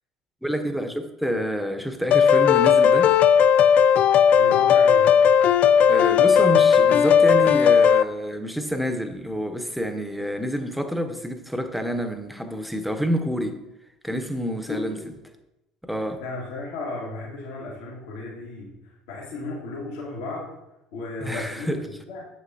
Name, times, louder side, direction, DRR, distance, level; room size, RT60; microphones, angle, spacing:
voice 1, 0.4-3.2 5.9-13.6 14.0-15.0 15.8-16.2 21.2-21.8, equal, ahead, 1.0 m, -28 dB
sound 1, 2.1-8.0, left 8 dB, 50° left, 0.3 m, -16 dB
voice 2, 4.4-5.1 14.7-15.1 16.2-20.5 20.9-22.3, left 3 dB, 70° left, 1.9 m, -34 dB
8.4 x 7.5 x 2.8 m
hypercardioid pair, 65°, 3 cm